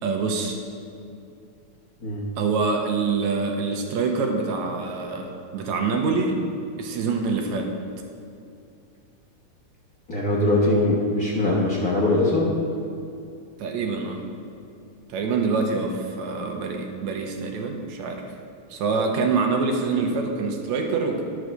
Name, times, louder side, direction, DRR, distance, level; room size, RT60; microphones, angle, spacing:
voice 1, 0.0-0.6 2.4-6.4 6.8-7.7 13.6-14.2 15.1-18.2 18.7-21.2, right 4 dB, 75° right, 3 dB, 2.1 m, -25 dB
voice 2, 10.1-12.5, left 2 dB, 50° left, -6 dB, 1.0 m, -21 dB
11.0 x 4.8 x 6.4 m, 2.6 s
omnidirectional pair, 3.4 m